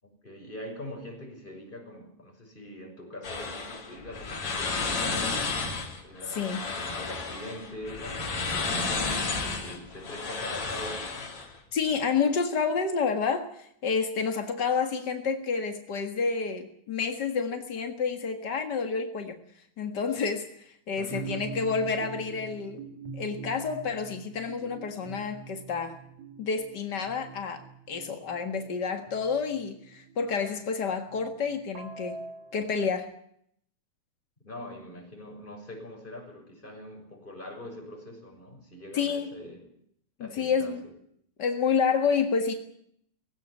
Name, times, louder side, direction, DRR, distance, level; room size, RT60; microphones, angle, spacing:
voice 1, 0.0-5.6 6.0-11.3 21.0-21.4 34.4-39.7 40.2-40.9, left 1 dB, 10° left, 1 dB, 6.1 m, -43 dB
sound 1, 3.2-11.6, left 4 dB, 45° left, 4.4 m, -32 dB
voice 2, 11.7-19.3 19.8-22.8 23.1-26.0 26.4-32.2 32.5-33.1 38.9-39.3 40.4-40.8 41.4-42.5, left 5 dB, 70° left, 6 dB, 0.9 m, -29 dB
sound 2, 21.1-30.3 31.1-33.0, right 5 dB, 45° right, 3.8 m, -44 dB
19.5 x 17.0 x 9.5 m, 0.69 s
omnidirectional pair, 4.7 m